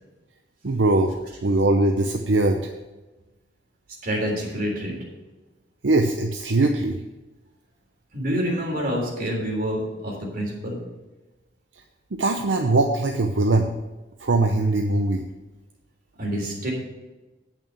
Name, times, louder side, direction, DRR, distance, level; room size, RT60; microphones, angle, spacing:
voice 1, 0.6-1.1 1.4-2.6 5.8-7.0 12.1-13.7 14.2-15.2, right 2 dB, 80° right, 3 dB, 0.7 m, -21 dB
voice 2, 4.0-5.0 8.1-10.8 16.2-16.7, equal, 55° right, -2 dB, 3.5 m, -27 dB
8.9 x 6.0 x 7.5 m, 1.1 s
head